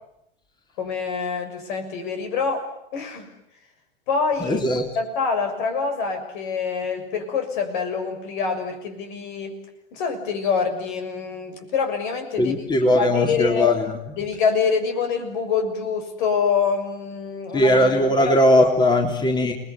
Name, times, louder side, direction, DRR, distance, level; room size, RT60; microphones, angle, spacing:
voice 1, 0.8-3.3 4.1-4.6 4.9-9.6 9.9-13.7 14.2-17.8 18.2-18.7, left 5 dB, 55° left, 6 dB, 6.6 m, -26 dB
voice 2, 4.4-4.9 12.4-14.0 17.5-19.5, left 1 dB, 15° left, 3 dB, 3.6 m, -19 dB
30.0 x 21.0 x 9.5 m, 0.80 s
figure-of-eight pair, 95°, 29 cm